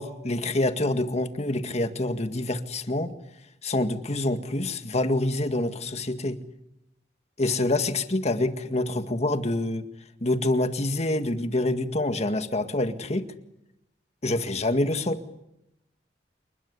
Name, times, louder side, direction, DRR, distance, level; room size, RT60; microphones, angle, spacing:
voice 1, 0.0-3.1 3.6-6.4 7.4-9.9 10.2-13.3 14.2-15.2, left 2 dB, 40° left, 9 dB, 2.0 m, -26 dB
29.0 x 21.0 x 9.8 m, 0.86 s
head